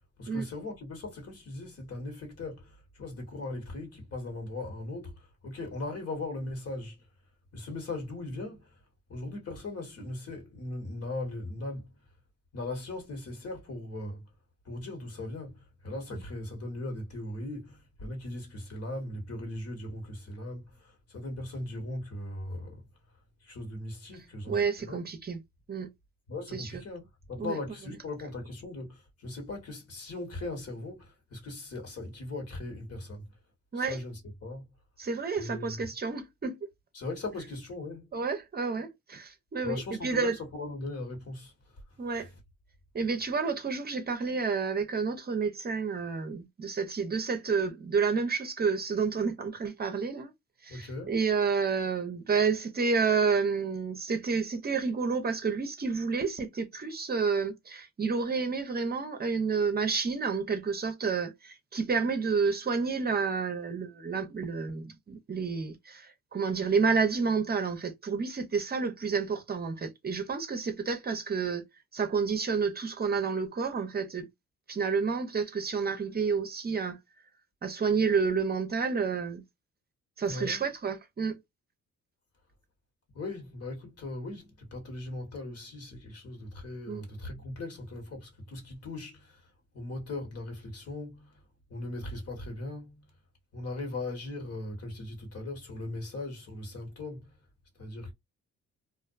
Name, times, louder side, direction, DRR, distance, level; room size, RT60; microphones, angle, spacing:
voice 1, 0.2-7.1 7.5-8.8 9.1-11.9 12.5-14.3 14.6-22.8 23.4-25.1 26.3-33.3 33.7-34.7 35.4-35.9 36.9-38.1 39.6-41.8 50.7-51.1 80.3-80.6 83.1-91.4 91.7-93.0 93.5-97.3 97.7-98.1, left 2 dB, 55° left, 1.4 m, -39 dB
voice 2, 24.5-25.4 25.7-25.9 26.5-26.8 27.4-27.6 33.7-34.0 35.0-36.7 38.1-40.3 42.0-42.3 42.9-50.3 50.6-71.6 71.9-74.3 74.7-77.0 77.6-79.4 80.2-81.4 86.9-87.0, right 5 dB, 30° right, 0.6 m, -30 dB
2.5 x 2.1 x 2.4 m
cardioid pair, 90°, 30 cm